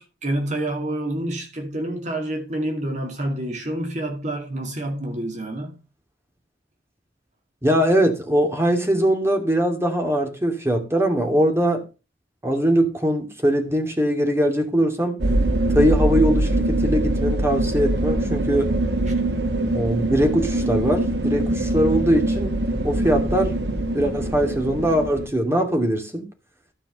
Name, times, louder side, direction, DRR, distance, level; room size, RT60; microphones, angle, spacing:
voice 1, 0.0-5.8 19.1-19.2, right 1 dB, 45° right, 2.5 m, -28 dB
voice 2, 7.6-11.8 12.4-15.2 15.7-18.7 19.7-22.6 22.8-23.6 23.9-26.2, equal, 15° right, 2.5 m, -21 dB
sound 1, 15.2-25.3, right 1 dB, 70° right, 1.7 m, -23 dB
13.0 x 5.6 x 6.7 m
head